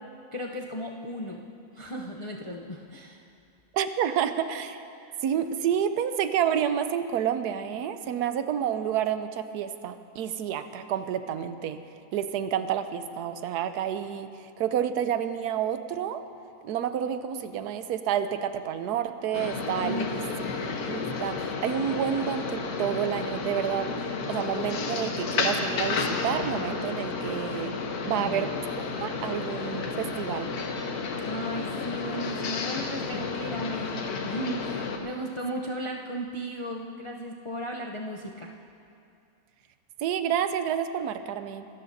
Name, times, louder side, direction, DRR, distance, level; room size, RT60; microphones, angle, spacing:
voice 1, 0.3-1.4 1.7-3.2 19.8-20.6 28.1-28.5 31.2-38.5, equal, 45° left, -1 dB, 0.4 m, -35 dB
voice 2, 3.7-4.8 5.2-11.8 12.1-16.2 16.6-20.2 20.9-23.9 24.3-27.7 28.1-28.5 29.0-30.5 40.0-41.7, right 9 dB, 85° right, 10 dB, 1.2 m, -29 dB
sound 1, 19.3-35.0, left 4 dB, 70° left, 1.5 m, -32 dB
25.0 x 13.5 x 2.7 m, 2.6 s
omnidirectional pair, 1.7 m